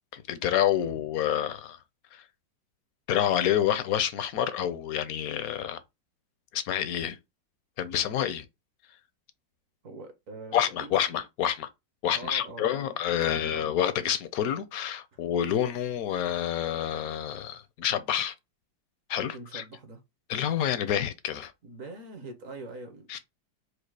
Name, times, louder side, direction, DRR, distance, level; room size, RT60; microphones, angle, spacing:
voice 1, 0.1-1.8 2.1-2.2 3.1-5.8 6.5-7.2 7.8-8.4 10.5-11.7 12.0-18.3 19.1-19.6 20.3-21.5 23.1-23.2, left 10 dB, 65° left, 0.9 m, -28 dB
voice 2, 9.8-10.9 12.1-13.7 19.3-20.0 21.6-23.2, right 2 dB, 55° right, 1.2 m, -43 dB
4.9 x 2.3 x 4.6 m
omnidirectional pair, 2.0 m